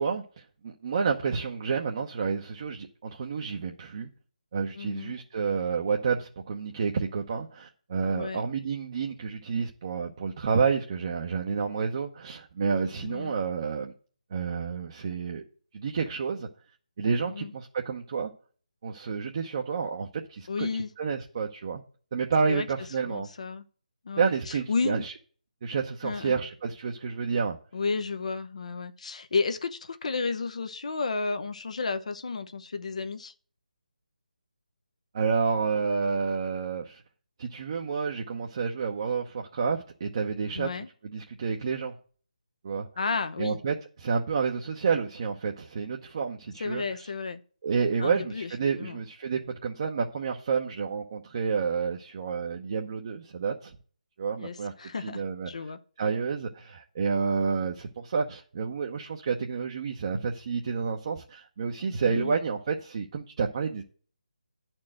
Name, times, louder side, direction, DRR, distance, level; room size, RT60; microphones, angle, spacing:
voice 1, 0.0-4.1 4.5-13.9 14.3-15.4 15.7-16.5 17.0-18.3 18.8-20.7 21.0-21.8 22.1-23.3 24.2-25.1 25.6-27.6 35.1-37.0 37.4-41.9 42.6-42.9 43.4-47.1 47.6-53.8 54.2-55.5 56.0-63.8, right 5 dB, 40° right, 0.9 m, -30 dB
voice 2, 4.7-5.2 8.1-8.4 13.0-13.3 17.3-17.5 20.5-20.9 22.5-22.7 23.1-23.6 24.0-25.0 26.0-26.4 27.7-33.3 40.5-40.9 43.0-43.6 46.6-47.4 48.0-48.5 48.8-49.0 54.4-55.8 62.0-62.3, left 4 dB, 55° left, 0.8 m, -32 dB
10.5 x 4.5 x 7.6 m
figure-of-eight pair, 155°, 4 cm